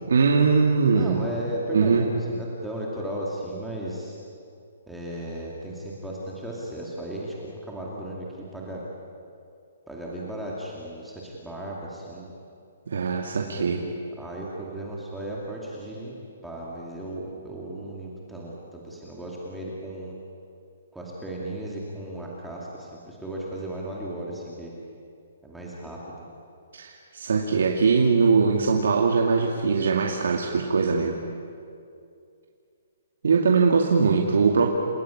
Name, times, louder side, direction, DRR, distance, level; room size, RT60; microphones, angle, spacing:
voice 1, 0.1-1.2 1.7-2.1 12.9-13.8 26.7-31.2 33.2-34.7, right 5 dB, 75° right, 1 dB, 2.3 m, -21 dB
voice 2, 0.9-4.2 4.9-7.3 7.6-8.3 8.5-8.8 9.9-12.3 13.4-16.1 16.4-20.2 20.9-24.7 25.4-26.1, right 1 dB, ahead, -5 dB, 2.4 m, -35 dB
28.5 x 16.0 x 10.0 m, 2.4 s
hypercardioid pair, 175°, 0 cm